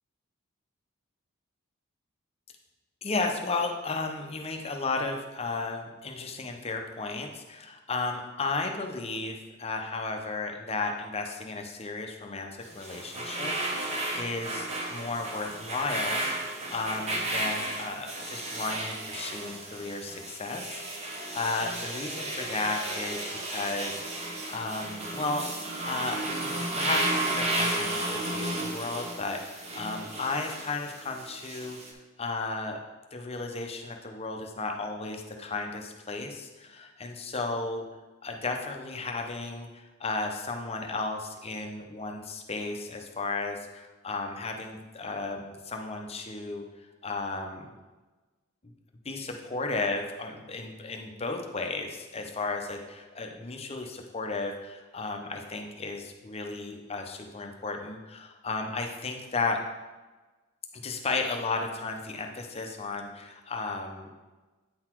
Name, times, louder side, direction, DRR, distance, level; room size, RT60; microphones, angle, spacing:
voice 1, 3.0-25.4 25.8-31.8 32.2-32.8 33.1-37.8 38.2-46.6 47.0-47.8 48.6-48.7 49.0-59.6 60.8-64.1, left 3 dB, 30° left, 3 dB, 0.7 m, -34 dB
sound 1, 12.6-31.9, right 1 dB, 30° right, 0.9 m, -33 dB
8.6 x 4.0 x 4.5 m, 1.2 s
head